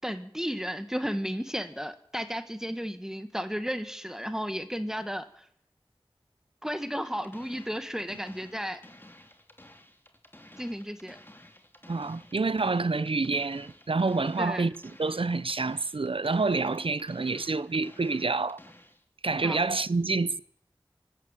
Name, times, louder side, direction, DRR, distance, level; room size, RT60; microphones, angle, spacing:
voice 1, 0.0-5.4 6.6-8.8 10.6-11.2 14.4-14.7 19.4-19.6, equal, 5° right, 1.9 m, -33 dB
sound 1, 7.0-19.0, left 1 dB, 25° left, 3.0 m, -53 dB
voice 2, 11.9-14.7 15.0-18.6 19.2-20.4, right 3 dB, 75° right, 0.8 m, -28 dB
25.0 x 12.0 x 9.1 m
wide cardioid pair, 50°, 9 cm